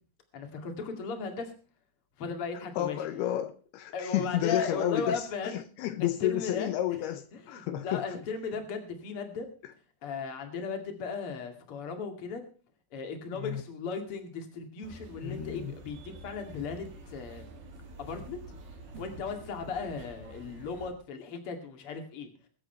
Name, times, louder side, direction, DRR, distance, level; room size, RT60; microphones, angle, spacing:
voice 1, 0.3-1.5 2.2-3.0 3.9-5.5 6.2-6.7 7.3-9.5 10.0-12.4 12.9-17.4 18.0-18.4 19.0-22.3, left 5 dB, 40° left, 2.6 m, -36 dB
voice 2, 2.8-8.2 13.3-13.6 15.2-15.7, left 13 dB, 80° left, 2.8 m, -31 dB
sound 1, 14.8-20.9, right 2 dB, 65° right, 4.5 m, -48 dB
23.0 x 8.1 x 4.5 m
omnidirectional pair, 4.7 m